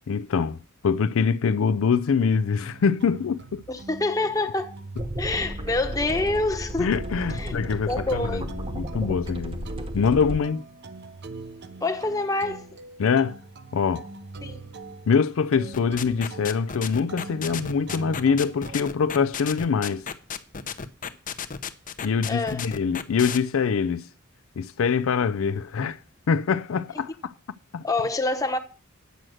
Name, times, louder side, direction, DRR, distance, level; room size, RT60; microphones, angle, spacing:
voice 1, 0.1-3.6 6.8-8.4 8.7-9.6 9.9-10.6 13.0-13.4 13.7-14.1 15.1-20.1 22.0-24.1 24.6-26.0 26.3-27.3 27.7-27.8, left 6 dB, 70° left, 0.4 m, -24 dB
sound 1, 2.4-18.8, right 3 dB, 55° right, 0.7 m, -43 dB
voice 2, 3.7-4.7 5.2-6.9 7.4-7.6 7.9-8.5 11.8-12.7 14.4-14.6 22.3-22.6 27.8-28.6, left 2 dB, 15° left, 1.0 m, -26 dB
sound 2, 5.0-10.4, equal, 25° right, 1.1 m, -34 dB
sound 3, 15.7-23.4, left 7 dB, 40° left, 0.7 m, -33 dB
9.1 x 7.6 x 6.3 m
head